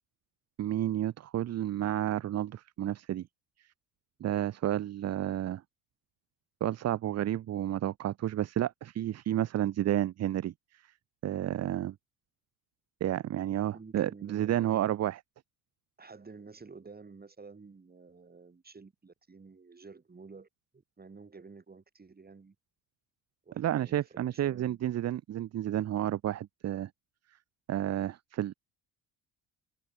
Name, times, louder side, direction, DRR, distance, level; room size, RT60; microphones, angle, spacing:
voice 1, 0.6-3.3 4.2-5.6 6.6-10.5 11.2-11.9 13.0-15.2 23.6-26.9 27.7-28.5, right 12 dB, 40° right, 0.7 m, -31 dB
voice 2, 13.7-14.9 16.0-20.5 20.7-22.5 23.4-24.8, right 4 dB, 25° right, 6.7 m, -51 dB
cardioid pair, 105°, 39 cm